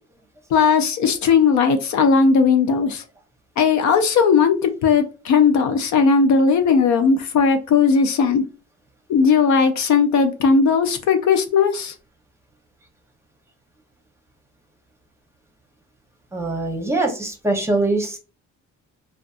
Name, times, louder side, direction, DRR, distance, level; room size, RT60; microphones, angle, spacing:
voice 1, 0.5-3.0 3.6-8.4 9.1-11.9, left 5 dB, 70° left, 8 dB, 0.5 m, -17 dB
voice 2, 16.3-18.2, right 2 dB, 10° right, 2 dB, 0.7 m, -22 dB
2.5 x 2.4 x 2.4 m, 0.34 s
cardioid pair, 90°, 30 cm